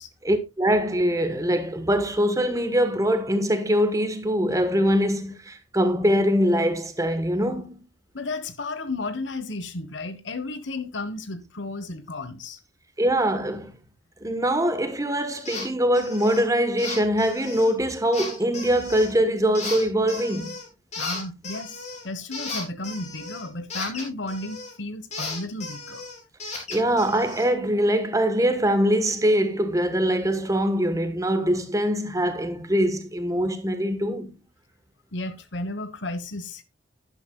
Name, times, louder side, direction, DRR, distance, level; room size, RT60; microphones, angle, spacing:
voice 1, 0.2-7.8 13.0-13.7 14.2-20.5 26.7-34.4, equal, 20° right, 1.2 m, -23 dB
voice 2, 8.1-12.6 21.0-26.0 35.1-36.6, left 2 dB, 80° left, 1.2 m, -33 dB
sound 1, 15.4-15.7 15.9-16.4 16.8-17.7 18.1-19.1 19.5-20.7 20.9-24.7 25.1-27.5, left 3 dB, 40° left, 3.7 m, -35 dB
11.0 x 10.5 x 2.3 m
head